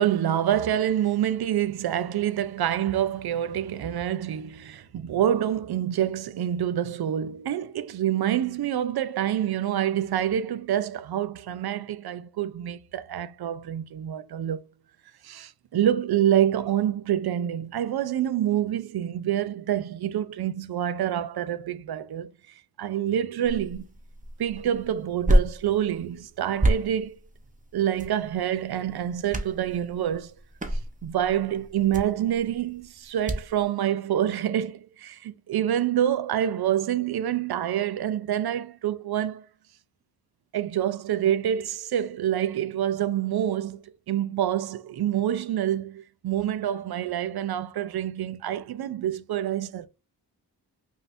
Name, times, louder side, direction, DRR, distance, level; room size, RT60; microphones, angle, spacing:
voice 1, 0.0-14.6 15.2-22.3 22.8-23.8 24.4-27.2 27.7-30.3 31.0-39.4 40.5-49.9, right 10 dB, 65° right, 0.5 m, -27 dB
sound 1, 23.4-33.6, right 1 dB, 20° right, 0.8 m, -30 dB
5.1 x 2.7 x 2.6 m
cardioid pair, 70°, 41 cm